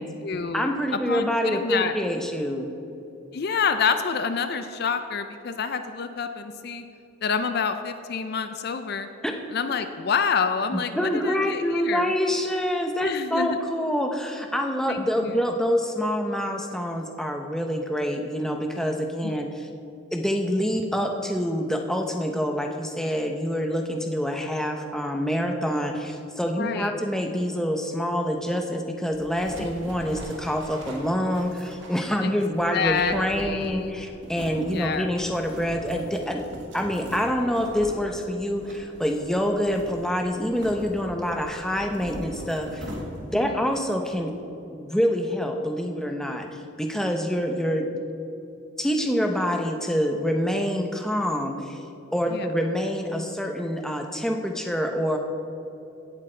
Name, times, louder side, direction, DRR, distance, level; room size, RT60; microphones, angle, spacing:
voice 1, 0.0-1.9 3.3-6.8 7.2-9.1 9.5-12.1 13.0-13.6 14.9-15.4 19.2-19.4 26.6-26.9 29.6-29.7 32.2-32.4 32.7-33.9 34.7-35.1 43.3-43.5 52.3-52.5, left 5 dB, 50° left, 9 dB, 0.5 m, -28 dB
voice 2, 0.5-2.7 9.2-9.3 10.7-19.7 20.1-36.4 36.7-42.9 43.2-44.3 44.7-46.5 46.8-47.9 48.8-51.8 52.1-55.2, equal, 5° left, 3 dB, 0.7 m, -26 dB
sound 1, 29.1-43.5, equal, 60° right, 1.7 m, -41 dB
16.5 x 8.0 x 3.3 m, 2.9 s
head